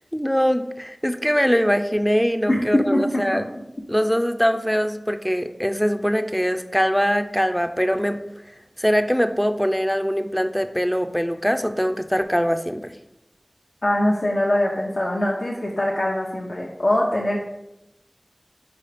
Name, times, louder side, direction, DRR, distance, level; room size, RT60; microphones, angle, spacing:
voice 1, 0.0-3.4 3.9-8.2 8.8-13.0, equal, 5° left, 8 dB, 0.5 m, -22 dB
voice 2, 2.5-3.4 13.8-17.4, left 1 dB, 70° left, -4 dB, 0.9 m, -22 dB
5.0 x 4.1 x 5.0 m, 0.90 s
wide cardioid pair, 45°, 0 cm